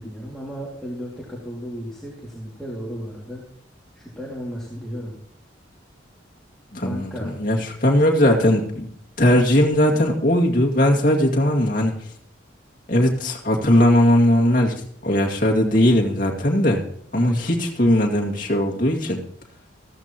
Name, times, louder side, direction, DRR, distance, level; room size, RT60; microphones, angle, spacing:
voice 1, 0.0-3.4 3.9-5.2 6.8-7.3 17.1-17.5, equal, 5° left, -5 dB, 2.3 m, -34 dB
voice 2, 6.7-8.9 9.2-11.9 12.9-14.7 15.0-16.8 17.1-19.2, left 1 dB, 45° left, 0 dB, 2.1 m, -19 dB
14.5 x 14.5 x 3.0 m, 0.64 s
head